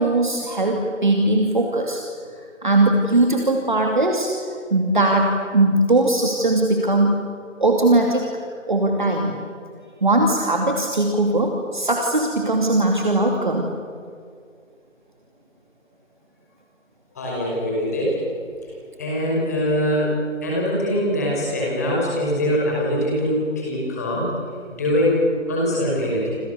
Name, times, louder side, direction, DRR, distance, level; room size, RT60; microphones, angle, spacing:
voice 1, 0.0-2.0 2.6-4.3 4.7-7.1 7.6-8.3 8.7-9.4 10.0-13.7, right 2 dB, 40° right, 1 dB, 2.6 m, -19 dB
voice 2, 17.2-18.2 19.0-24.3 24.7-26.4, equal, 15° left, -4 dB, 5.4 m, -22 dB
28.5 x 27.0 x 6.8 m, 2.2 s
figure-of-eight pair, 170°, 39 cm